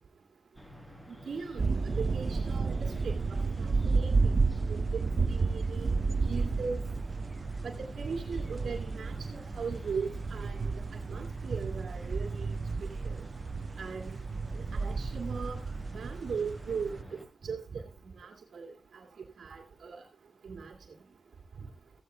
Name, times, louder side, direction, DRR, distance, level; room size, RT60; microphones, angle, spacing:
sound 1, 0.5-17.2, equal, 10° left, 6.9 m, -50 dB
voice 1, 1.1-1.6 1.9-3.1 3.6-3.7 3.9-4.1 5.3-6.0 6.3-6.8 7.6-10.6 11.1-12.5 13.0-13.1 13.8-14.1 14.7-15.6 15.9-17.0 17.4-17.8 18.2-19.1 19.4-20.0 20.4-20.8, right 5 dB, 75° right, 1.9 m, -38 dB
sound 2, 1.6-17.0, right 4 dB, 50° right, 0.7 m, -32 dB
15.0 x 15.0 x 2.2 m
cardioid pair, 65°, 0 cm